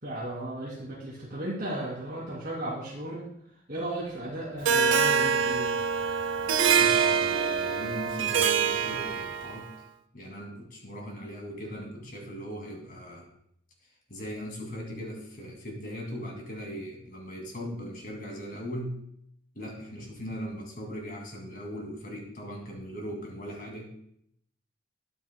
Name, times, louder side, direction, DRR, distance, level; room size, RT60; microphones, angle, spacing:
voice 1, 0.0-3.2 3.7-5.7, right 1 dB, 45° right, -7 dB, 2.4 m, -35 dB
Harp, 4.6-9.7, right 6 dB, 65° right, 0.5 m, -25 dB
voice 2, 6.7-9.7 10.1-13.3 14.1-19.0 19.5-23.9, equal, 40° left, 0 dB, 2.3 m, -39 dB
12.5 x 9.3 x 2.2 m, 0.70 s
head